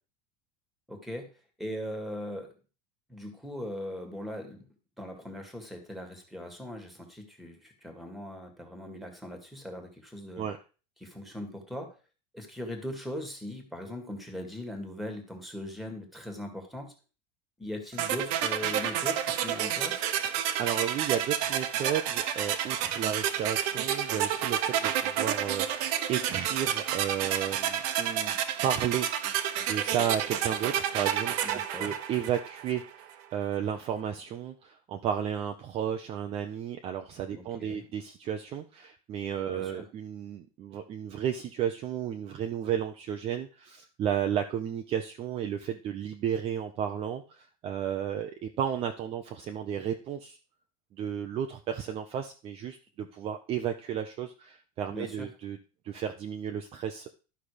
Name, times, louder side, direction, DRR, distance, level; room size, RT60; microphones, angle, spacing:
voice 1, 0.9-1.3 1.6-2.5 3.1-4.7 5.0-10.4 11.0-12.0 12.3-16.9 17.6-20.1 31.4-31.9 37.3-37.8 39.5-39.9 54.9-55.3, left 1 dB, ahead, 5 dB, 1.8 m, -40 dB
sound 1, 18.0-32.9, right 10 dB, 55° right, 1.1 m, -30 dB
voice 2, 20.6-28.4 28.6-50.4 51.0-55.6 55.8-57.1, right 9 dB, 30° right, 5 dB, 0.7 m, -33 dB
11.5 x 5.7 x 5.0 m, 0.34 s
supercardioid pair, 160°, 21 cm